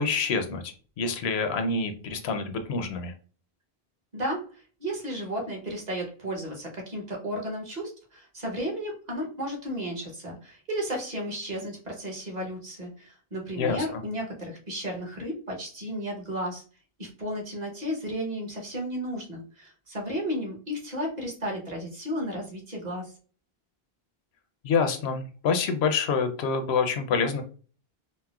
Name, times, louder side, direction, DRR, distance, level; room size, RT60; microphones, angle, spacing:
voice 1, 0.0-3.1 13.6-13.9 24.6-27.4, left 5 dB, 80° left, 7 dB, 0.8 m, -27 dB
voice 2, 4.1-16.6 17.0-23.1, equal, 45° right, -1 dB, 1.0 m, -33 dB
4.1 x 2.0 x 2.3 m, 0.39 s
omnidirectional pair, 1.1 m